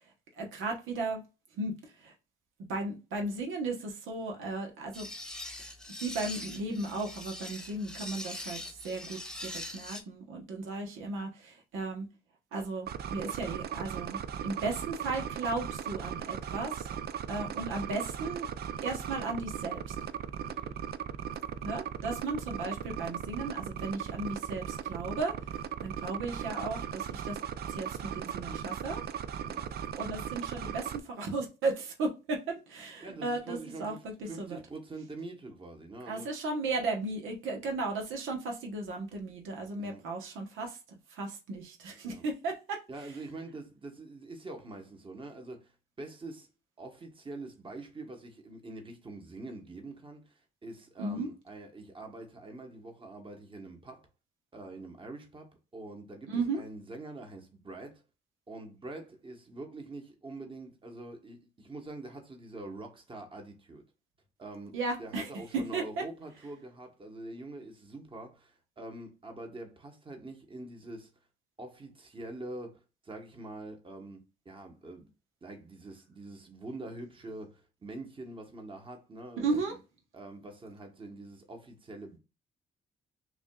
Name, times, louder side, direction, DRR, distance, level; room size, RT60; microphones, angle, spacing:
voice 1, 0.4-1.2 1.6-2.1 2.7-5.1 6.0-12.1 12.5-16.9 17.3-18.5 18.8-19.9 21.6-27.4 27.7-29.0 29.9-33.9 34.4-34.6 36.1-40.8 41.1-42.8 51.0-51.3 56.3-56.6 64.7-66.0 79.4-79.7, right 3 dB, 85° right, 1.1 m, -35 dB
sound 1, 4.9-10.0, left 1 dB, 5° left, 0.8 m, -42 dB
sound 2, 12.9-31.0, right 9 dB, 55° right, 0.4 m, -37 dB
voice 2, 33.0-36.4 39.8-40.0 42.0-42.3 42.9-46.5 46.8-54.1 54.5-58.0 58.5-63.8 64.4-71.1 71.6-75.1 75.4-79.8 80.1-82.2, right 2 dB, 25° right, 1.1 m, -45 dB
5.9 x 2.5 x 2.3 m
cardioid pair, 90°, 20 cm